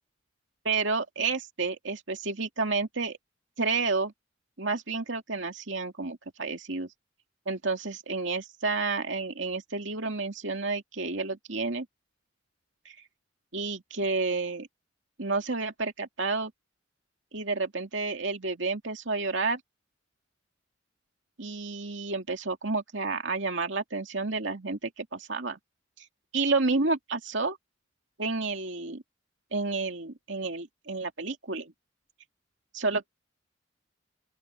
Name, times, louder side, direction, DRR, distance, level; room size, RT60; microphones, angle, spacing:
voice 1, 0.6-3.2 3.6-4.1 4.6-6.9 7.5-11.9 12.8-13.0 13.5-14.7 15.2-16.5 17.3-19.6 21.4-25.6 26.0-26.1 26.3-27.6 28.2-29.0 29.5-31.7 32.7-33.1, right 3 dB, 65° right, 2.5 m, -30 dB
open air
head